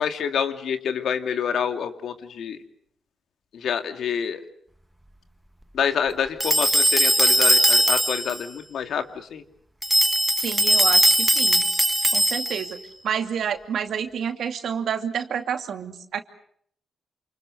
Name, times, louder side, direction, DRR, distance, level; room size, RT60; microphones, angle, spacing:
voice 1, 0.0-2.6 3.5-4.4 5.7-9.4, left 7 dB, 75° left, 7 dB, 2.5 m, -27 dB
sound 1, 6.4-8.4 9.8-12.7, right 1 dB, 5° right, 1.3 m, -20 dB
voice 2, 10.4-11.7 12.1-12.8 13.0-16.2, right 7 dB, 75° right, 7 dB, 2.6 m, -29 dB
29.0 x 28.0 x 6.6 m, 0.65 s
cardioid pair, 110°, 0 cm